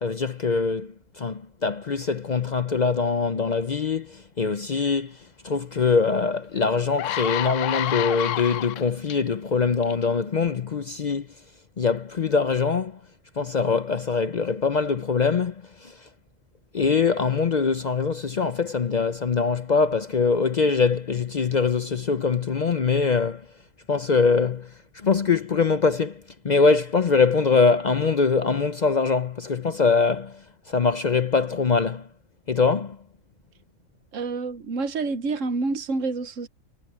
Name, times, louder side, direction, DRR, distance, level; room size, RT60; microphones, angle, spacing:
voice 1, 0.0-5.2 5.4-11.3 11.8-13.0 13.4-16.1 16.7-23.5 23.9-32.1 32.5-33.0, left 5 dB, 45° left, 0.6 m, -23 dB
sound 1, 6.2-6.3 6.8-9.2 9.8-10.1, left 12 dB, 80° left, 0.9 m, -29 dB
voice 2, 34.1-36.5, right 3 dB, 75° right, 1.4 m, -28 dB
omnidirectional pair, 1.3 m